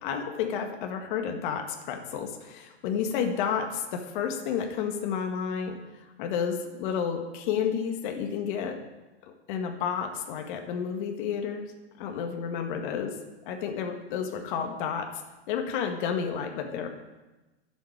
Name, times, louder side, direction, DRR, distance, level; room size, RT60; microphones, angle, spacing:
voice 1, 0.0-8.8 9.2-11.7 12.0-13.2 13.5-15.2 15.5-16.9, left 7 dB, 50° left, 4 dB, 1.8 m, -31 dB
11.5 x 7.3 x 8.8 m, 1.1 s
hypercardioid pair, 140°, 33 cm